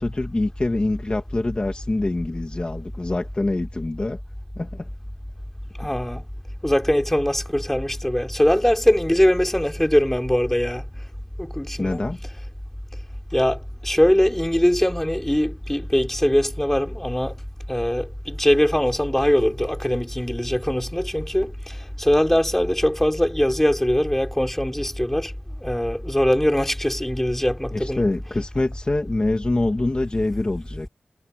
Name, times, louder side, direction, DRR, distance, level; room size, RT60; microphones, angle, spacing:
voice 1, 0.0-4.2 4.6-4.9 11.8-12.2 27.7-30.9, left 2 dB, 35° left, 2.2 m, -25 dB
voice 2, 5.8-6.2 6.6-10.8 11.4-12.0 13.3-17.3 17.7-25.3 25.6-28.0, equal, 10° left, 5.1 m, -21 dB
wide cardioid pair, 60°, 3 cm